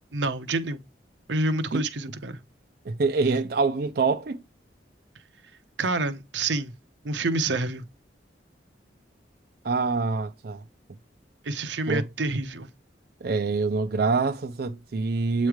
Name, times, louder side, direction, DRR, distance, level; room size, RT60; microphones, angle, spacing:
voice 1, 0.1-0.8 1.3-2.4 5.8-6.7 7.0-7.9 11.4-12.7 15.4-15.5, right 2 dB, 80° right, 0.8 m, -28 dB
voice 2, 2.9-4.4 9.6-10.6 11.9-12.1 13.2-15.5, right 4 dB, 55° right, 0.5 m, -25 dB
8.2 x 3.1 x 4.9 m
head